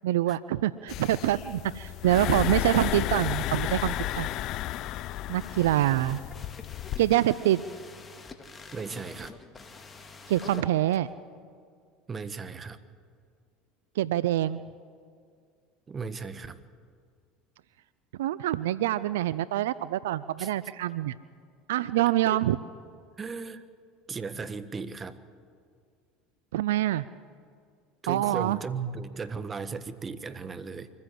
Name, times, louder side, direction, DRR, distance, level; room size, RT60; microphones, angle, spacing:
voice 1, 0.0-4.3 5.3-6.2 7.0-7.6 10.3-11.1 14.0-14.6 18.2-21.1 21.7-22.6 26.5-27.0 28.1-28.6, right 13 dB, 80° right, 17 dB, 0.4 m, -25 dB
sound 1, 0.9-7.1, left 13 dB, 55° left, 0.6 m, -32 dB
sound 2, 5.4-11.0, left 4 dB, 25° left, 2.0 m, -46 dB
voice 2, 8.7-9.3 12.1-12.8 15.9-16.6 20.4-20.5 22.3-22.4 23.2-23.6 24.1-25.2 28.0-30.9, right 5 dB, 25° right, 12 dB, 1.3 m, -36 dB
24.5 x 15.0 x 7.7 m, 2.2 s
hypercardioid pair, 80°, 0 cm